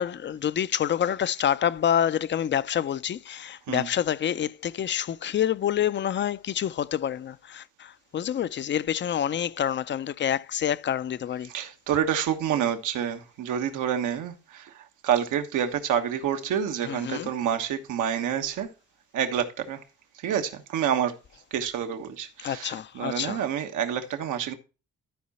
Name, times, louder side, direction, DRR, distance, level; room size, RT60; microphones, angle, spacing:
voice 1, 0.0-11.5 16.8-17.3 22.4-23.4, left 9 dB, 40° left, 0.5 m, -27 dB
voice 2, 11.5-14.6 15.0-18.7 19.1-19.8 20.2-21.1 21.5-24.5, right 9 dB, 85° right, 1.2 m, -28 dB
13.0 x 4.8 x 4.1 m
cardioid pair, 90°, 30 cm